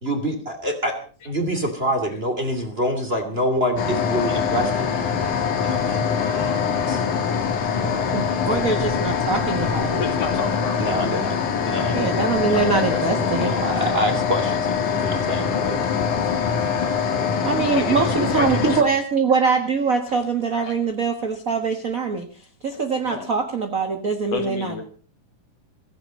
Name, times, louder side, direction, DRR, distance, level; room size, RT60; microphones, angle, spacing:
voice 1, 0.0-0.9 1.2-4.9 5.6-7.0 7.7-8.1 9.6-10.3 10.8-11.4 11.6-12.0 12.6-15.8, equal, 20° right, 6 dB, 2.7 m, -26 dB
sound 1, 3.8-18.8, left 6 dB, 75° left, 3.6 m, -23 dB
voice 2, 8.1-10.0 11.9-13.5 17.4-22.3 22.6-24.8, right 5 dB, 45° right, 7 dB, 1.2 m, -23 dB
voice 3, 10.0-10.8 12.1-13.1 17.7-19.0 20.6-20.7 23.0-23.3 24.3-24.8, left 5 dB, 55° left, 7 dB, 3.1 m, -31 dB
16.5 x 15.0 x 5.3 m, 0.39 s
omnidirectional pair, 3.6 m